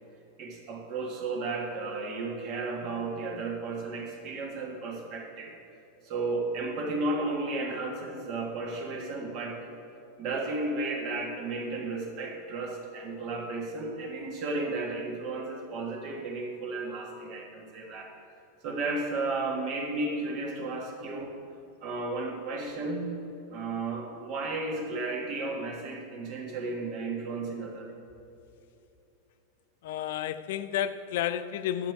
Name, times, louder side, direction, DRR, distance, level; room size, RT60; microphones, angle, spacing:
voice 1, 0.4-5.6 6.0-9.7 10.2-18.1 18.6-21.4 21.8-23.2 23.5-27.9, right 3 dB, 35° right, 1.5 m, -33 dB
voice 2, 29.8-31.9, left 11 dB, 60° left, 0.4 m, -31 dB
11.5 x 8.0 x 4.7 m
supercardioid pair, 170°, 0 cm